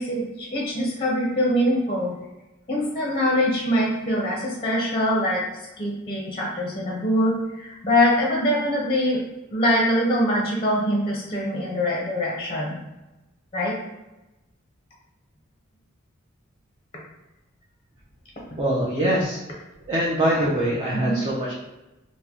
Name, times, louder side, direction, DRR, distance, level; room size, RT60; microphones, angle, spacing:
voice 1, 0.0-2.1 2.7-5.4 5.8-9.2 9.5-12.8 13.5-13.8 20.9-21.2, equal, 30° left, -3 dB, 0.6 m, -23 dB
voice 2, 18.6-19.4 19.9-21.5, right 1 dB, 25° right, -6 dB, 0.5 m, -23 dB
3.7 x 2.1 x 2.8 m, 1.0 s
head